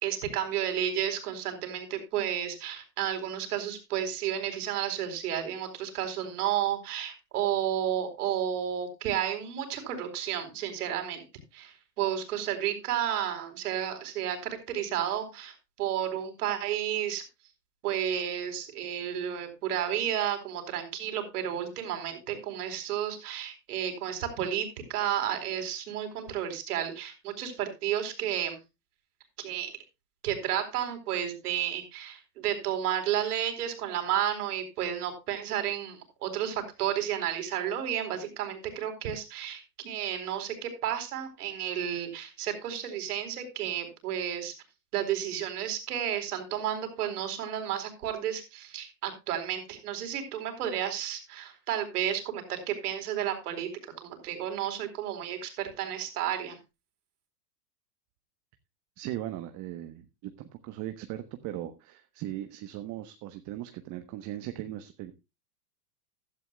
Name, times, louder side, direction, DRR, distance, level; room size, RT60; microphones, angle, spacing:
voice 1, 0.0-11.2 11.5-17.2 17.8-28.6 29.4-29.7 30.2-44.5 44.9-53.7 54.0-56.6, right 10 dB, 70° right, 7 dB, 4.4 m, -32 dB
voice 2, 59.0-65.1, right 13 dB, 35° right, 9 dB, 1.2 m, -38 dB
16.0 x 12.0 x 2.3 m, 0.26 s
hypercardioid pair, 120°, 48 cm